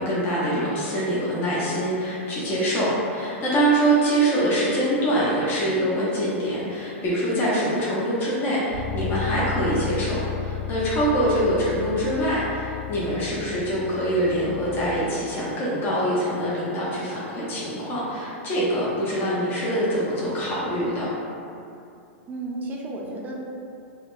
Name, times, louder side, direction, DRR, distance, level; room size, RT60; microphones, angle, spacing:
voice 1, 0.0-21.1, right 1 dB, 30° left, -8 dB, 0.7 m, -24 dB
Bass guitar, 8.7-15.0, left 7 dB, 80° right, 0.5 m, -33 dB
voice 2, 22.3-23.4, right 2 dB, 25° right, -2 dB, 0.4 m, -33 dB
4.0 x 2.1 x 2.5 m, 2.6 s
hypercardioid pair, 120°, 7 cm